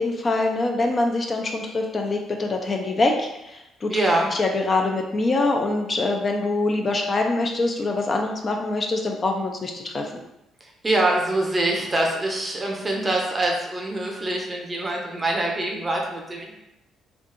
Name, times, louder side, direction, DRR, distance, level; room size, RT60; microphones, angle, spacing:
voice 1, 0.0-3.9 4.3-10.1, left 2 dB, 40° left, 2 dB, 0.4 m, -24 dB
voice 2, 3.9-4.3 10.8-16.6, right 1 dB, 25° right, 0 dB, 0.6 m, -24 dB
2.6 x 2.3 x 2.4 m, 0.89 s
supercardioid pair, 70°, 0 cm